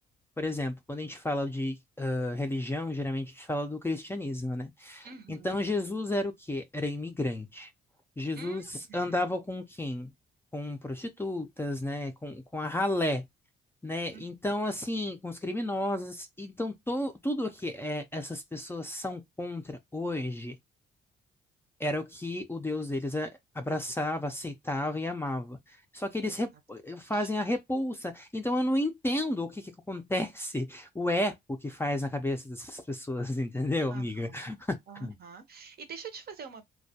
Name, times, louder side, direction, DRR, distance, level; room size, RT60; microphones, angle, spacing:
voice 1, 0.4-7.7 8.2-10.1 10.5-13.2 13.8-20.6 21.8-35.2, left 1 dB, 10° left, 0.4 m, -32 dB
voice 2, 5.0-5.6 8.3-9.2 14.1-14.3 26.2-26.4 27.0-27.3 33.9-34.5 34.9-36.6, right 6 dB, 50° right, 0.7 m, -46 dB
2.2 x 2.1 x 2.7 m
cardioid pair, 90°, 20 cm